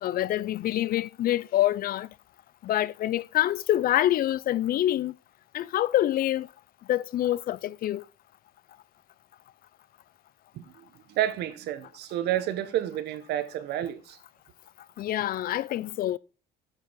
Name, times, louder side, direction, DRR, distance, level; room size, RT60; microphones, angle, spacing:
voice 1, 0.0-2.1 2.6-5.1 5.5-6.5 6.9-8.0 15.0-16.2, left 13 dB, 60° left, 0.5 m, -26 dB
voice 2, 11.1-14.2, right 12 dB, 80° right, 1.2 m, -30 dB
7.7 x 7.4 x 5.2 m
cardioid pair, 110°, 17 cm